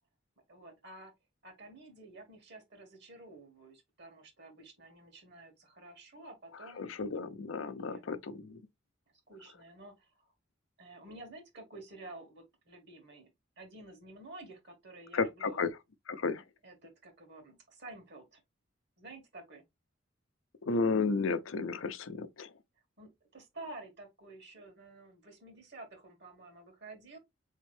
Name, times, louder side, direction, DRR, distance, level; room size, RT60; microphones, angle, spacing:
voice 1, 0.5-1.1 1.4-6.9 7.6-8.1 9.3-10.3 10.8-13.3 13.6-15.6 16.6-18.4 19.0-19.6 23.0-27.2, right 2 dB, 60° right, 2.0 m, -51 dB
voice 2, 6.8-8.6 15.1-15.7 16.1-16.4 20.7-22.5, left 4 dB, 90° left, 0.6 m, -33 dB
4.3 x 3.7 x 3.3 m
head